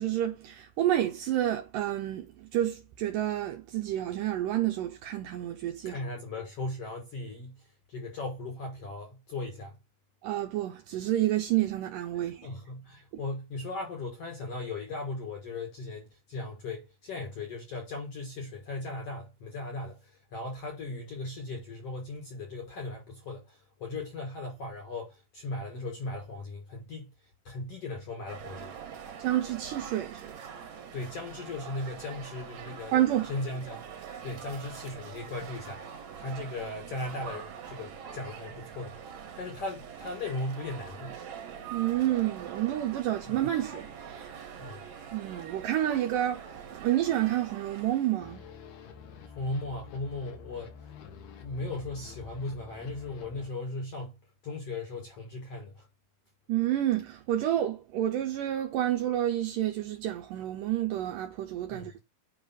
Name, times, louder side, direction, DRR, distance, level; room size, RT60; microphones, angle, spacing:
voice 1, 0.0-6.0 10.2-12.5 29.2-30.4 32.9-33.3 41.7-44.3 45.1-48.4 56.5-62.0, right 13 dB, 80° right, 2.0 m, -29 dB
voice 2, 5.9-7.6 7.9-9.8 12.4-27.1 27.5-28.8 30.9-32.9 33.3-33.8 34.2-39.0 39.4-41.2 43.3-43.4 44.6-44.8 49.4-50.7 51.4-54.2 54.4-55.9 61.7-61.9, left 2 dB, 55° left, 1.8 m, -37 dB
sound 1, 28.3-48.2, right 7 dB, 60° right, 2.3 m, -44 dB
sound 2, 48.2-53.5, left 6 dB, 85° left, 3.2 m, -48 dB
8.5 x 4.9 x 3.9 m
omnidirectional pair, 4.5 m